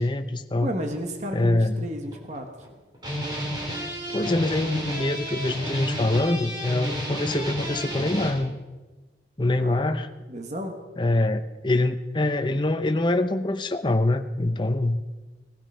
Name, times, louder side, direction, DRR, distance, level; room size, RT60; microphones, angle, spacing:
voice 1, 0.0-0.7 1.3-1.9 4.1-8.5 9.4-10.1 11.0-15.0, left 2 dB, 25° left, 8 dB, 0.7 m, -24 dB
voice 2, 0.6-2.5 9.6-9.8 10.3-10.8, equal, 40° right, 4 dB, 1.3 m, -32 dB
sound 1, 1.3-1.4 1.9-2.7 2.9-8.3, equal, 25° right, 3.0 m, -31 dB
18.5 x 12.5 x 5.6 m, 1.2 s
head